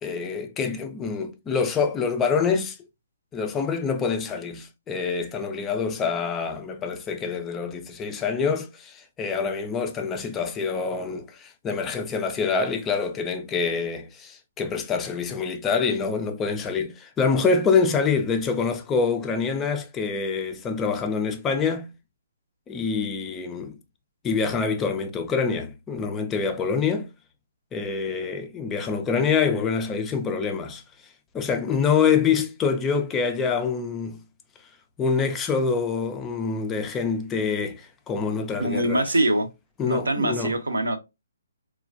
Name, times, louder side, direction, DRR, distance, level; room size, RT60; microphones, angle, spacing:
voice 1, 0.0-2.8 3.3-21.9 22.7-23.8 24.2-27.1 27.7-30.8 31.3-34.2 35.0-39.1 39.8-40.6, left 5 dB, 15° left, 0.3 m, -26 dB
voice 2, 38.6-39.5 39.9-41.0, right 1 dB, 70° right, 0.5 m, -23 dB
3.0 x 2.2 x 2.4 m
figure-of-eight pair, 130°, 0 cm